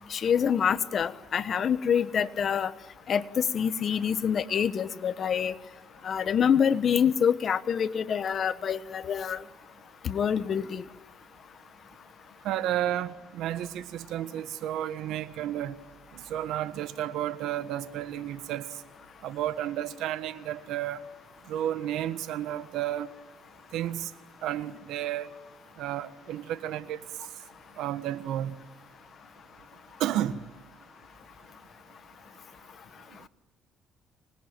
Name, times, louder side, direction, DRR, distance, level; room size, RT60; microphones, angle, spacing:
voice 1, 0.1-2.7 3.1-5.5 6.0-9.4 10.0-10.8, left 7 dB, 50° left, 1.2 m, -26 dB
voice 2, 12.4-15.7 16.3-18.6 19.2-21.0 21.5-23.1 23.7-24.1 24.4-25.3 25.8-27.0 27.8-28.6 30.0-30.4, right 12 dB, 80° right, 1.4 m, -32 dB
26.0 x 20.5 x 9.2 m
cardioid pair, 95°, 0 cm